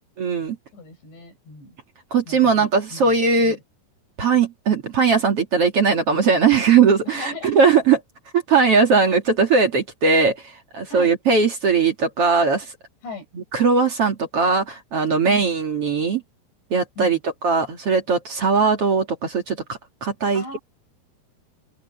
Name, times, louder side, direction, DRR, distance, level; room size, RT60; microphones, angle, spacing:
voice 1, 0.2-0.6 2.1-3.6 4.2-8.0 8.3-10.4 10.7-12.6 13.4-16.2 16.7-17.2 17.4-20.6, right 5 dB, 45° right, 2.4 m, -19 dB
voice 2, 0.7-1.8 2.3-3.6 7.0-7.6 9.0-9.2 10.9-11.1 13.0-13.2 15.3-15.5 17.0-17.2 20.3-20.6, left 1 dB, 85° left, 9.9 m, -38 dB
open air
omnidirectional pair, 5.0 m